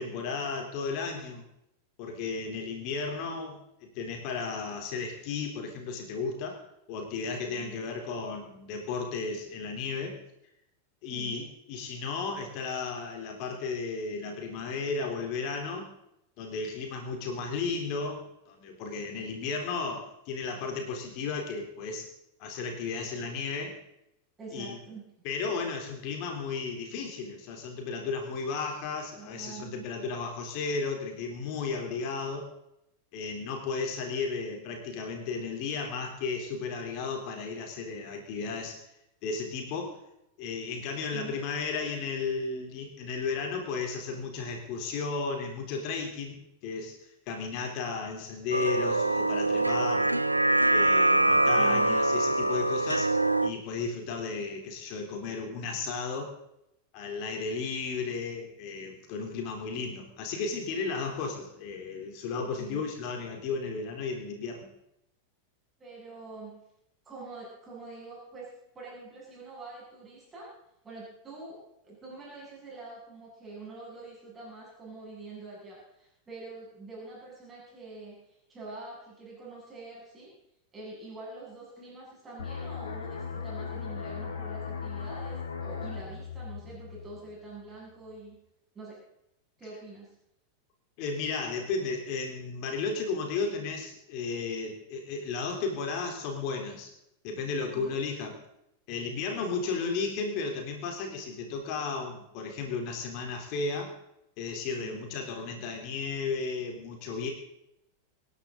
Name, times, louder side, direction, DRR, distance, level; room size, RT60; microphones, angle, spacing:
voice 1, 0.0-1.4 2.0-6.6 6.9-10.2 11.0-15.9 16.4-22.1 22.4-23.8 24.5-24.8 25.2-32.5 33.1-38.8 39.2-40.0 40.4-47.0 47.3-50.1 50.7-53.1 53.4-56.4 56.9-64.7 91.0-96.9 97.2-98.4 98.9-103.9 104.4-107.3, left 4 dB, 45° left, 3 dB, 3.6 m, -34 dB
voice 2, 11.1-11.5 23.2-23.3 24.4-25.0 29.2-29.8 41.1-41.4 51.3-52.0 62.6-62.8 65.8-66.6 67.0-70.5 70.8-71.6 71.8-80.3 80.7-88.4 88.7-89.0 89.6-90.1 97.7-98.0 104.8-105.0, right 3 dB, 20° right, -5 dB, 7.5 m, -45 dB
sound 1, 48.5-53.5, right 1 dB, 85° right, 0.6 m, -24 dB
sound 2, 82.4-87.8 88.1-88.3, left 6 dB, 65° left, 2.5 m, -38 dB
26.0 x 11.0 x 4.0 m, 0.80 s
figure-of-eight pair, 90°, 0 cm